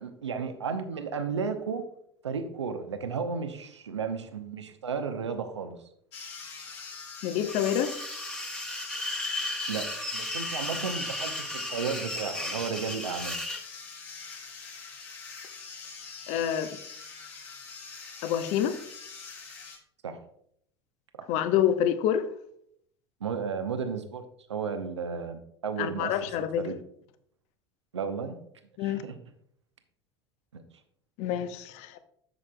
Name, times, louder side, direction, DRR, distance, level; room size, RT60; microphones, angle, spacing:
voice 1, 0.0-1.8 2.2-5.8 9.7-13.4 20.0-20.2 21.2-21.3 23.2-26.8 27.9-28.4 28.8-29.2 30.5-30.6, right 5 dB, 80° right, 0.7 m, -34 dB
sound 1, 6.1-19.8, left 5 dB, 70° left, 2.4 m, -44 dB
voice 2, 7.2-7.9 16.3-16.7 18.2-18.7 21.3-22.3 25.8-26.6 28.8-29.0 31.2-32.0, left 10 dB, 50° left, 0.8 m, -27 dB
sound 2, 7.5-13.6, left 1 dB, 5° left, 1.2 m, -35 dB
11.0 x 7.2 x 2.2 m
figure-of-eight pair, 75°, 14 cm